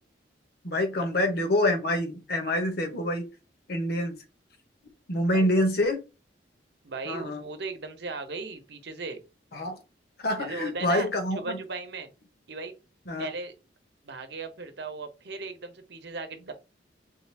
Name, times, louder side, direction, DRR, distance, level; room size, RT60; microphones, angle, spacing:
voice 1, 0.6-3.3 3.7-4.2 5.1-6.0 7.1-7.4 9.5-9.8 10.2-11.6 13.1-13.3, left 1 dB, 60° left, 4 dB, 1.0 m, -26 dB
voice 2, 5.3-5.6 6.8-9.2 10.4-11.1 11.3-12.1 12.5-12.8 13.2-13.5 14.0-16.5, right 3 dB, 65° right, 7 dB, 0.8 m, -37 dB
3.8 x 2.4 x 4.5 m, 0.28 s
head